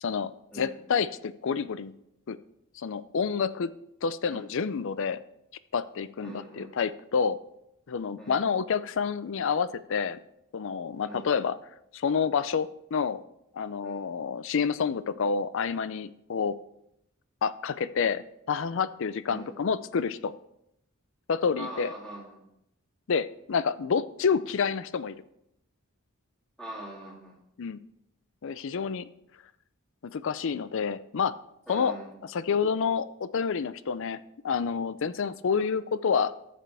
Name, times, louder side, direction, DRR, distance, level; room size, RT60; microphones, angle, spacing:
voice 1, 0.0-1.9 2.3-2.4 2.8-3.7 4.0-5.2 5.7-7.4 7.9-10.2 10.5-11.6 11.9-13.2 13.5-16.6 17.4-20.3 21.3-21.9 23.1-25.2 27.6-27.8 28.4-29.1 30.1-31.4 31.7-34.2 34.4-36.3, left 6 dB, 65° left, 16 dB, 0.5 m, -28 dB
voice 2, 6.2-6.7 8.2-8.4 11.0-11.3 13.8-14.1 19.3-19.5 21.6-22.4 26.6-27.3 31.7-32.1 35.5-35.6, right 1 dB, 5° left, -4 dB, 3.0 m, -42 dB
13.5 x 7.6 x 3.4 m, 0.80 s
head